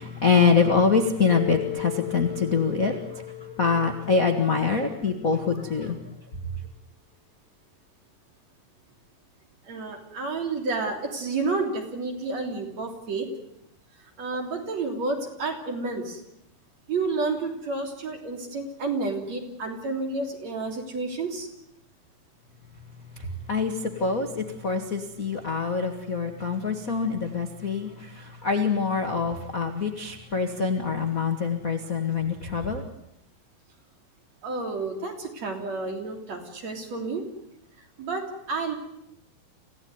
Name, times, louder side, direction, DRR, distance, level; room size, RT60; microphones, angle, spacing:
voice 1, 0.0-6.1 23.1-32.8, left 5 dB, 45° left, 5 dB, 1.0 m, -25 dB
Mallet percussion, 1.3-5.5, left 20 dB, 70° left, 2.6 m, -38 dB
voice 2, 9.6-13.3 14.2-16.2 16.9-21.5 34.4-37.2 38.0-38.8, right 3 dB, 45° right, 3 dB, 4.2 m, -30 dB
27.0 x 16.5 x 9.6 m, 0.84 s
omnidirectional pair, 4.5 m